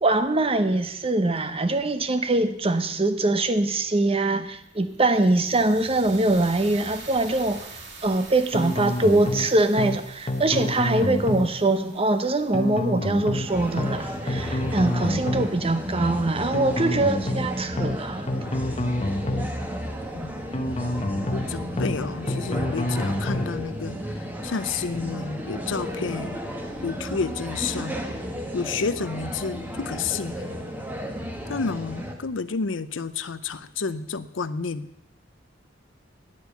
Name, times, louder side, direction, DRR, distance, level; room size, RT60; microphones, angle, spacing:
voice 1, 0.0-7.7 8.0-18.3, right 2 dB, 30° right, 10 dB, 0.9 m, -23 dB
sound 1, 4.6-14.8, right 3 dB, 65° right, 2.4 m, -45 dB
sound 2, 8.5-9.5 9.8-10.0 10.3-11.5 12.5-13.5 13.8-14.0 14.3-15.5 16.5-17.5 17.8-18.0 18.3-19.5 20.5-21.5 21.8-22.0 22.3-23.5, left 1 dB, 35° left, 0.9 m, -27 dB
sound 3, 13.5-32.1, equal, 10° right, 1.5 m, -33 dB
voice 2, 21.2-26.4 26.8-28.0 28.5-30.5 31.5-34.9, left 5 dB, 85° left, 14 dB, 0.6 m, -30 dB
10.0 x 8.2 x 8.4 m, 0.80 s
head